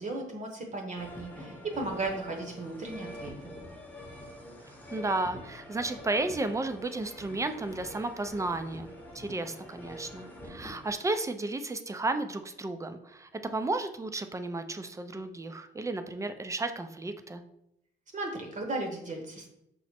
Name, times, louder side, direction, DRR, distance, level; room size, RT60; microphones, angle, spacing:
voice 1, 0.0-3.5 18.1-19.5, right 2 dB, 40° right, 2 dB, 0.9 m, -36 dB
sound 1, 1.0-10.9, left 1 dB, 10° left, 0.8 m, -45 dB
voice 2, 4.6-17.4, right 2 dB, 15° right, 9 dB, 0.4 m, -33 dB
5.8 x 2.1 x 4.2 m, 0.81 s
cardioid pair, 90°, 20 cm